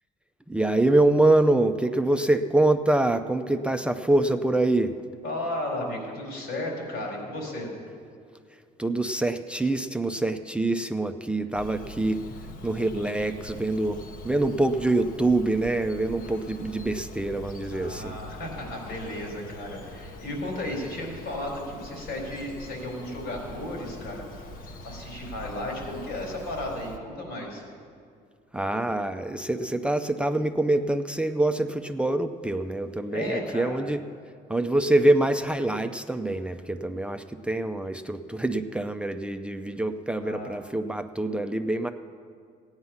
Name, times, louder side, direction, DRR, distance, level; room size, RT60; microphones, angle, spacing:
voice 1, 0.5-4.9 8.8-12.2 12.6-18.1 28.5-34.0 34.5-41.9, right 2 dB, 5° right, 7 dB, 0.5 m, -25 dB
voice 2, 5.2-7.7 17.7-24.2 24.8-27.6 33.1-33.8 40.2-40.6, left 1 dB, 85° left, 0 dB, 4.2 m, -34 dB
Bird vocalization bird call bird song, 11.5-27.0, left 1 dB, 55° left, 1.1 m, -43 dB
16.0 x 9.6 x 5.7 m, 2.3 s
cardioid pair, 110°, 17 cm